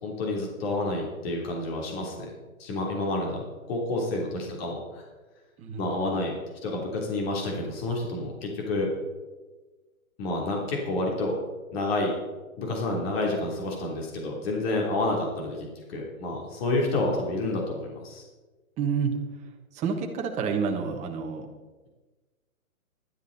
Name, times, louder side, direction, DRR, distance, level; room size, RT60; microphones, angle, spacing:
voice 1, 0.0-2.3 2.6-5.1 5.8-8.9 10.2-11.3 11.7-12.1 12.6-18.2, left 2 dB, 45° left, -1 dB, 3.4 m, -29 dB
voice 2, 5.6-6.2 18.8-19.1 19.7-21.5, right 6 dB, 15° right, 3 dB, 1.3 m, -29 dB
15.5 x 12.0 x 4.1 m, 1.3 s
hypercardioid pair, 145°, 43 cm